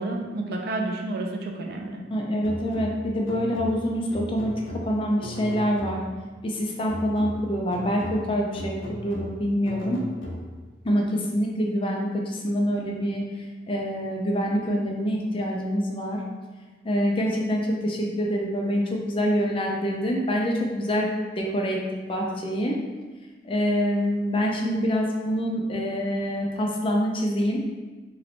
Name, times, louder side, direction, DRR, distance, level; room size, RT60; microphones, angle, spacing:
voice 1, 0.0-2.0, right 2 dB, 55° right, 2 dB, 0.4 m, -30 dB
voice 2, 2.1-6.0 6.4-10.0 10.8-13.2 13.7-16.2 16.8-21.8 22.1-22.8 23.4-27.6, equal, 30° left, -1 dB, 0.5 m, -26 dB
sound 1, 2.4-6.3 6.9-10.8, left 1 dB, 80° left, 0.6 m, -38 dB
3.1 x 3.0 x 2.9 m, 1.3 s
head